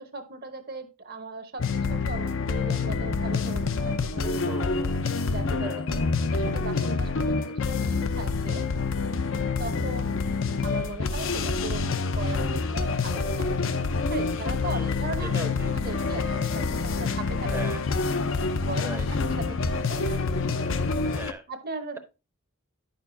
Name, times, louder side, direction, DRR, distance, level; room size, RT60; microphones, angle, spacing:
voice 1, 0.0-4.6 5.3-6.0 6.3-8.6 9.6-10.2 10.6-13.6 14.1-15.5 15.7-17.7 18.6-20.2 21.5-22.0, right 3 dB, 45° right, 8 dB, 0.9 m, -38 dB
sound 1, 1.6-21.3, left 4 dB, 60° left, 0.6 m, -27 dB
voice 2, 4.5-5.1 5.6-5.8 14.6-15.0 15.3-15.7 17.4-17.8 18.8-19.1 21.0-21.5, right 1 dB, 10° right, 8 dB, 0.7 m, -39 dB
9.5 x 6.6 x 2.6 m, 0.29 s
head